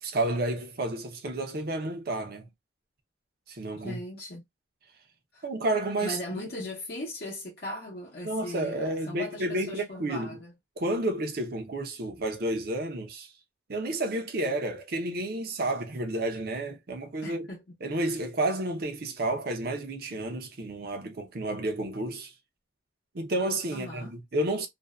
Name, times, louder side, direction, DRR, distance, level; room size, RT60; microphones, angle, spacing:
voice 1, 0.0-2.5 3.5-4.0 5.4-6.4 8.2-10.3 10.8-13.3 13.7-17.5 17.8-22.3 23.1-24.7, right 1 dB, 55° right, 0.6 m, -31 dB
voice 2, 3.8-4.4 5.3-5.4 6.0-10.5 17.2-17.6 23.7-24.2, left 1 dB, 60° left, 0.7 m, -38 dB
2.5 x 2.2 x 2.2 m
head